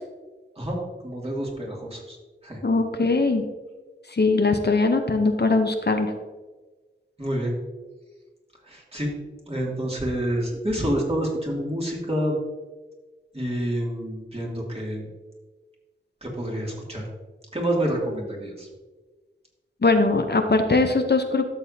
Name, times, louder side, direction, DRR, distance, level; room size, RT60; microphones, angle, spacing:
voice 1, 1.0-2.2 2.4-2.6 7.2-7.6 8.6-9.1 9.5-12.4 13.3-15.1 16.2-17.1 17.5-18.7, right 1 dB, 30° right, -3 dB, 2.4 m, -28 dB
voice 2, 2.6-3.5 4.1-6.1 19.8-21.5, left 3 dB, 55° left, 6 dB, 0.7 m, -21 dB
12.5 x 6.9 x 2.8 m, 1.3 s
wide cardioid pair, 60°, 20 cm